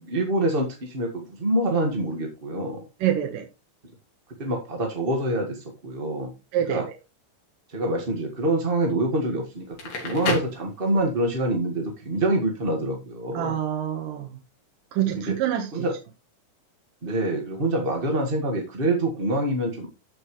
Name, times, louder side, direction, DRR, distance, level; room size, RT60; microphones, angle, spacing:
voice 1, 0.0-2.8 4.4-6.3 6.7-6.9 7.7-9.8 10.0-13.6 15.1-15.4 15.7-16.0 17.0-19.9, right 1 dB, 30° right, 2 dB, 1.1 m, -26 dB
voice 2, 3.0-3.5 6.5-6.8 13.3-14.4 14.9-15.7, right 11 dB, 80° right, 2 dB, 2.9 m, -26 dB
Crackle, 9.6-11.3, left 3 dB, 70° left, 4.3 m, -30 dB
14.0 x 6.1 x 3.2 m, 0.28 s
omnidirectional pair, 3.9 m